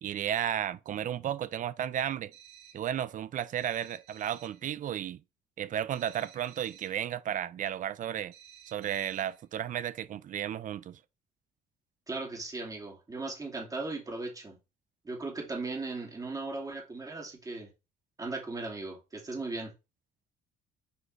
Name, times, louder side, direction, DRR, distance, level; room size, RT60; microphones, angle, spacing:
voice 1, 0.0-2.3 2.7-5.2 5.6-8.3 8.7-11.0, right 10 dB, 50° right, 0.6 m, -33 dB
sound 1, 2.3-2.9 3.6-4.7 5.9-7.1 8.3-9.4, right 9 dB, 80° right, 3.1 m, -54 dB
voice 2, 12.1-14.6 15.0-17.7 18.2-19.7, right 3 dB, 20° right, 2.5 m, -37 dB
6.5 x 4.9 x 3.2 m
cardioid pair, 110°, 17 cm